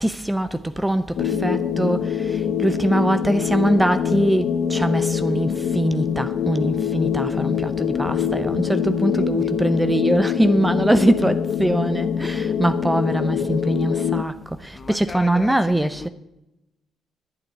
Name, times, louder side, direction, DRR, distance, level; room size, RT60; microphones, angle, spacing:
voice 1, 0.0-16.1, right 1 dB, 5° right, 0.7 m, -22 dB
sound 1, 1.2-14.2, left 7 dB, 75° left, 0.8 m, -24 dB
voice 2, 9.1-9.8 14.7-16.1, left 4 dB, 35° left, 1.0 m, -38 dB
9.7 x 8.8 x 9.4 m
cardioid pair, 90°, 0 cm